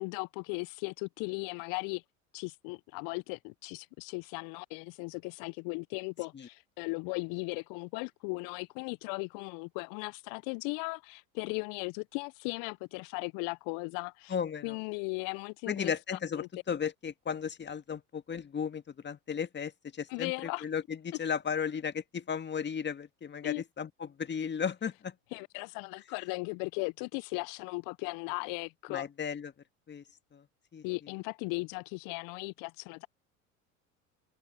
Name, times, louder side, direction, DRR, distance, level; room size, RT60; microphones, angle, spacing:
voice 1, 0.0-2.0 2.3-14.3 14.6-15.9 16.4-16.5 20.1-20.7 23.4-23.6 25.3-29.1 30.8-33.1, left 31 dB, 50° left, 0.8 m, -37 dB
voice 2, 14.3-14.8 15.7-25.1 28.9-29.5 29.9-30.0 30.3-30.5 30.7-30.8, left 7 dB, 25° left, 1.9 m, -35 dB
hypercardioid pair, 75°, 41 cm